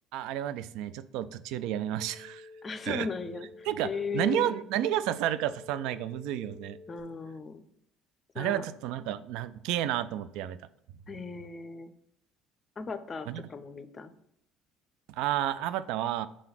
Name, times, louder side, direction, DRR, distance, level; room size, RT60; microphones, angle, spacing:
voice 1, 0.1-2.5 2.8-3.1 3.7-6.8 8.4-10.6 13.3-13.4 15.1-16.3, right 12 dB, 70° right, 15 dB, 0.3 m, -31 dB
sound 1, 2.0-7.0, left 3 dB, 40° right, 1.5 m, -50 dB
voice 2, 2.6-4.5 6.9-7.6 8.3-8.7 11.1-11.9 12.8-14.1, left 4 dB, 35° left, 10 dB, 0.5 m, -37 dB
5.0 x 3.8 x 5.7 m, 0.76 s
hypercardioid pair, 60°, 0 cm